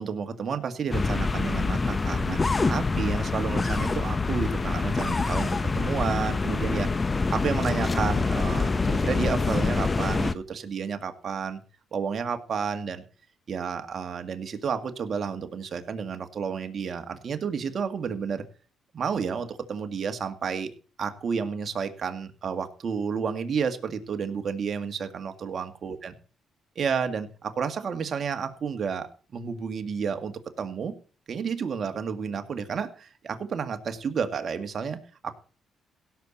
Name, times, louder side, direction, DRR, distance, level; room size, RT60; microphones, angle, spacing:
voice 1, 0.0-2.4 2.7-11.6 11.9-13.0 13.5-18.4 18.9-20.7 21.0-26.1 26.8-30.9 31.3-35.3, right 6 dB, 50° right, 7 dB, 2.0 m, -31 dB
sound 1, 0.9-10.3, left 3 dB, 25° left, 0.9 m, -26 dB
17.0 x 7.4 x 4.1 m, 0.39 s
cardioid pair, 90°, 0 cm